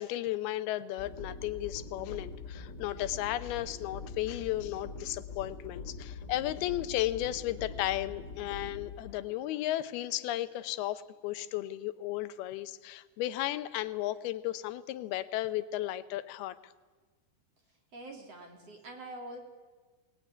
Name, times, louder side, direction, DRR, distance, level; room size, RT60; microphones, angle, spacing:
voice 1, 0.0-16.7, left 14 dB, 90° left, 13 dB, 2.8 m, -34 dB
sound 1, 1.0-11.0, left 4 dB, 25° left, 2.6 m, -44 dB
voice 2, 17.9-19.4, right 1 dB, 45° right, 2 dB, 3.4 m, -45 dB
21.5 x 20.0 x 9.6 m, 1.3 s
omnidirectional pair, 4.3 m